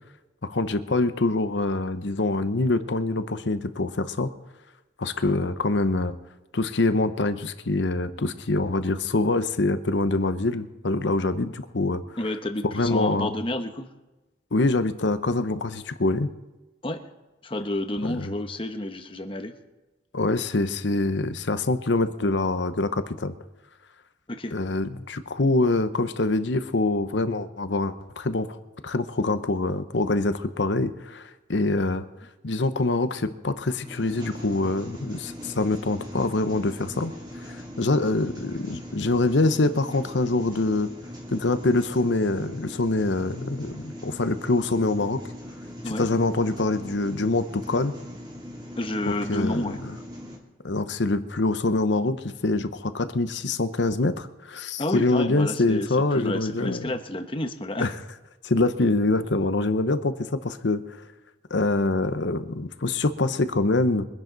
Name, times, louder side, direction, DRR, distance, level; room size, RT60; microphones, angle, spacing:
voice 1, 0.4-4.3 5.0-6.2 6.5-12.0 12.6-13.3 14.5-16.3 18.0-18.3 20.1-23.3 24.5-28.6 28.8-32.1 32.4-37.1 37.5-40.9 41.3-45.2 45.8-47.9 49.1-50.0 50.6-56.9 57.8-57.9 58.4-61.0 61.5-64.1, left 2 dB, 70° left, 11 dB, 0.8 m, -25 dB
voice 2, 12.2-13.9 16.8-17.0 17.4-19.5 24.3-24.5 45.8-46.1 48.8-49.8 54.8-57.9, left 1 dB, 30° left, 7 dB, 1.0 m, -30 dB
sound 1, 33.8-50.4, equal, 25° right, 2.8 m, -40 dB
23.5 x 10.5 x 4.0 m, 1.1 s
head